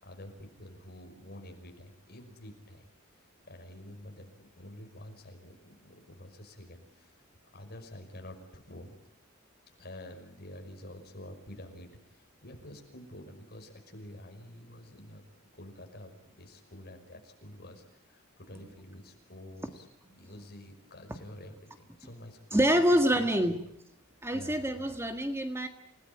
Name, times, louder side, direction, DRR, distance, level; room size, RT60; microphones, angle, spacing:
voice 1, 0.0-2.9 3.5-7.1 7.5-9.0 9.8-15.2 15.5-16.1 16.4-19.9 20.2-23.3 24.3-24.9, left 1 dB, 50° left, 4 dB, 5.6 m, -48 dB
voice 2, 22.5-23.6 24.2-25.7, equal, 10° right, 6 dB, 1.6 m, -26 dB
29.0 x 18.5 x 8.9 m, 0.79 s
head